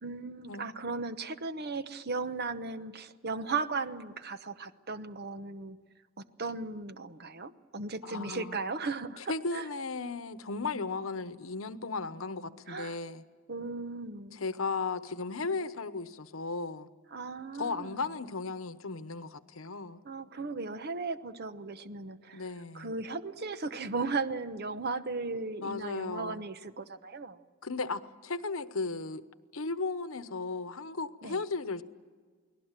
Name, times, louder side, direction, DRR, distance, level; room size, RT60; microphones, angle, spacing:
voice 1, 0.0-5.8 6.2-9.7 12.7-13.0 13.5-14.4 17.1-18.1 20.0-22.5 22.7-27.4 31.2-31.4, right 4 dB, 50° right, 1.0 m, -36 dB
voice 2, 8.0-8.6 9.3-13.2 14.3-16.9 17.6-20.0 22.3-22.9 25.6-26.4 27.6-29.2 29.5-31.8, left 3 dB, 85° left, 1.0 m, -35 dB
29.0 x 19.5 x 7.5 m
head